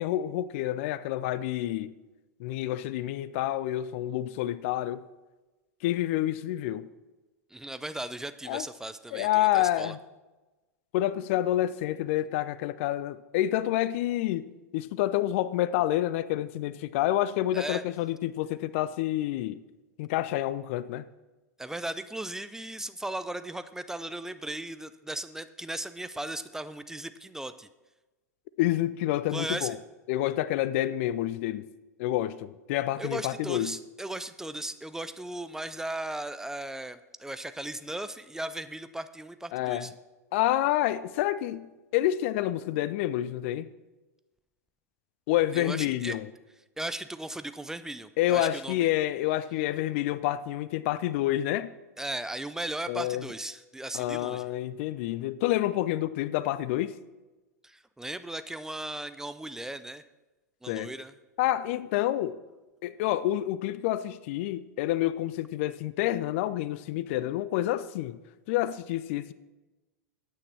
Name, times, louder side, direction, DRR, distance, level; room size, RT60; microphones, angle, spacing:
voice 1, 0.0-1.9 2.4-5.0 5.8-6.9 8.5-8.6 9.1-10.0 10.9-19.6 20.0-21.0 28.6-29.8 30.1-31.7 32.0-33.8 39.5-39.9 40.3-43.7 45.3-46.3 48.2-51.7 52.9-53.3 53.9-57.0 60.7-60.9 61.4-62.4 62.8-68.2 68.5-69.3, left 14 dB, 50° left, 0.5 m, -28 dB
voice 2, 7.5-10.0 17.5-17.8 21.6-27.7 29.3-29.8 33.0-39.9 45.5-46.2 46.8-48.9 52.0-54.5 57.6-60.0 60.6-61.1, right 1 dB, 5° right, 0.4 m, -37 dB
9.7 x 8.4 x 5.9 m
figure-of-eight pair, 90°, 9 cm